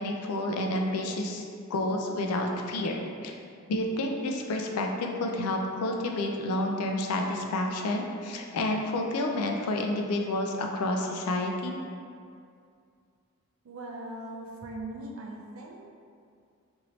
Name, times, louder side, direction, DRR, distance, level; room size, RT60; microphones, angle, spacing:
voice 1, 0.0-1.4 1.7-3.3 3.7-11.8, left 1 dB, 90° left, 2 dB, 0.4 m, -29 dB
voice 2, 13.6-15.8, right 1 dB, 65° right, -1 dB, 0.5 m, -40 dB
2.9 x 2.6 x 3.0 m, 2.3 s
head